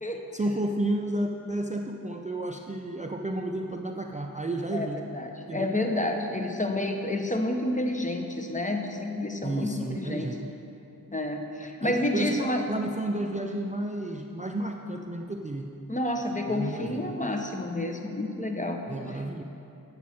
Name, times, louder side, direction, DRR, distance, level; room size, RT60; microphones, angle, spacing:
voice 1, 0.3-5.0 5.5-5.8 9.4-10.5 11.8-15.7 16.5-17.1 18.9-19.4, right 1 dB, 20° right, 3 dB, 0.4 m, -32 dB
voice 2, 5.1-10.3 11.1-12.6 15.9-18.8 19.1-19.2, left 1 dB, 20° left, 3 dB, 0.9 m, -29 dB
8.8 x 7.3 x 4.2 m, 2.7 s
cardioid pair, 40°, 35 cm